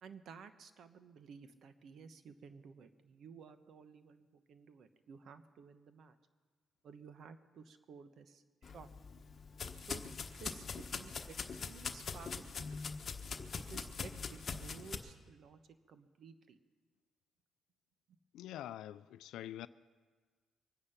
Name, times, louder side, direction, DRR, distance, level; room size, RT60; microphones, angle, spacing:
voice 1, 0.0-6.2 6.8-8.9 9.8-10.0 10.4-13.0 13.5-15.6 15.9-16.6, right 5 dB, 65° right, 1.0 m, -54 dB
sound 1, 8.6-15.0, left 5 dB, 45° left, 1.2 m, -43 dB
voice 2, 18.3-19.7, left 12 dB, 85° left, 0.4 m, -45 dB
23.5 x 9.9 x 5.8 m
cardioid pair, 90°, 0 cm